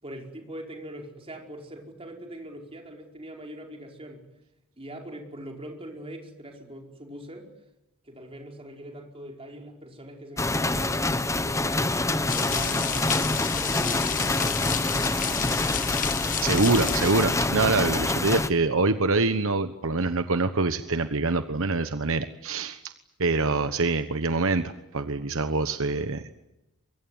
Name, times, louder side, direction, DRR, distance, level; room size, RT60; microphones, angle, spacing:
voice 1, 0.0-4.3 4.8-7.5 8.0-11.7 12.3-15.6, right 1 dB, 25° right, 2 dB, 5.0 m, -42 dB
sound 1, 10.4-18.5, left 2 dB, 15° left, 1.0 m, -26 dB
sound 2, 12.3-17.4, left 10 dB, 35° left, 1.0 m, -32 dB
voice 2, 16.2-22.9 23.2-26.2, right 3 dB, 65° right, 9 dB, 1.2 m, -25 dB
24.0 x 23.5 x 9.5 m, 0.92 s
head